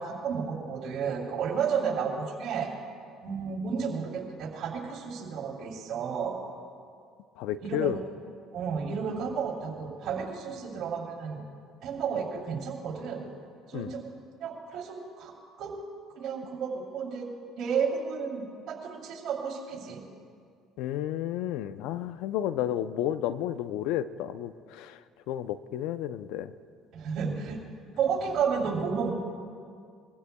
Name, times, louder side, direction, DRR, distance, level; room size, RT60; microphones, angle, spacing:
voice 1, 0.0-2.7 3.2-6.4 7.6-7.9 8.5-11.4 11.8-13.2 13.7-14.1 14.4-15.8 16.2-17.3 17.6-20.0 26.9-27.6 28.0-29.1, right 6 dB, 65° right, 0 dB, 3.2 m, -32 dB
voice 2, 7.4-8.0 13.7-13.9 20.8-25.0 25.3-26.5, left 11 dB, 75° left, 13 dB, 0.5 m, -31 dB
23.0 x 15.5 x 2.3 m, 2.2 s
supercardioid pair, 75°, 0 cm